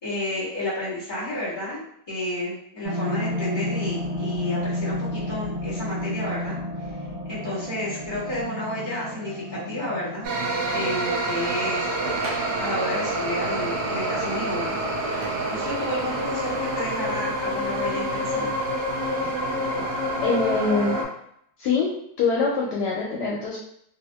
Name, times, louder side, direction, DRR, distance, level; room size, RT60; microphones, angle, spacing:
voice 1, 0.0-6.6 7.3-10.3 10.7-11.9 12.6-14.9 15.5-18.5, left 1 dB, 30° left, -8 dB, 1.2 m, -31 dB
sound 1, 2.8-13.7 14.1-14.2, left 1 dB, 30° right, 1.3 m, -32 dB
sound 2, 10.2-21.0, right 1 dB, 75° right, 1.3 m, -27 dB
sound 3, 11.4-12.8 14.4-15.6 16.4-16.5, right 2 dB, 55° right, 0.8 m, -40 dB
voice 2, 20.2-21.0 21.6-21.9 22.2-23.6, left 4 dB, 75° left, -3 dB, 1.1 m, -24 dB
2.9 x 2.7 x 2.2 m, 0.71 s
omnidirectional pair, 1.9 m